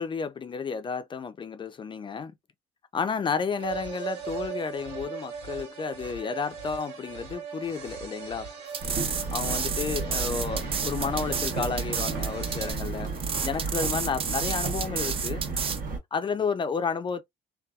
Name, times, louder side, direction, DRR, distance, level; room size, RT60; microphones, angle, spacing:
voice 1, 0.0-2.3 2.9-8.5 9.3-13.1 13.4-15.5 16.1-17.2, left 5 dB, 30° left, 0.4 m, -31 dB
sound 1, 3.6-12.7, right 6 dB, 85° right, 1.5 m, -39 dB
sound 2, 8.7-15.8, right 6 dB, 35° right, 0.4 m, -31 dB
sound 3, 8.8-16.0, right 4 dB, 55° right, 0.9 m, -33 dB
2.7 x 2.3 x 2.2 m
cardioid pair, 110°, 17 cm